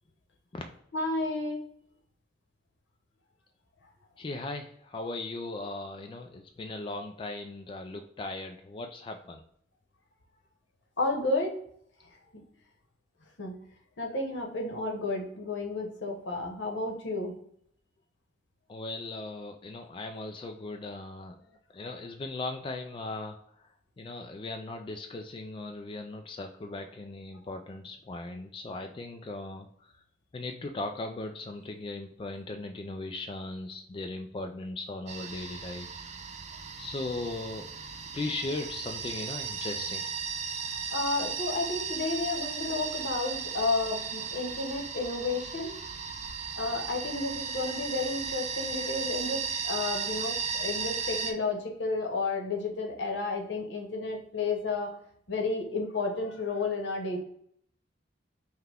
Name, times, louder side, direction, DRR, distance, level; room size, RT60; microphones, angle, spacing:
voice 1, 0.9-1.6 11.0-11.6 12.3-12.4 13.4-13.5 14.0-17.3 40.9-45.8 46.6-54.9 55.3-57.2, left 3 dB, 80° left, 1 dB, 1.1 m, -32 dB
voice 2, 4.2-9.4 18.7-23.4 24.0-29.9 30.3-36.1 36.8-37.7 38.1-40.0, left 2 dB, 30° left, 4 dB, 0.3 m, -38 dB
sound 1, 35.1-51.3, right 5 dB, 40° right, 0.5 m, -36 dB
5.7 x 2.2 x 3.4 m, 0.66 s
head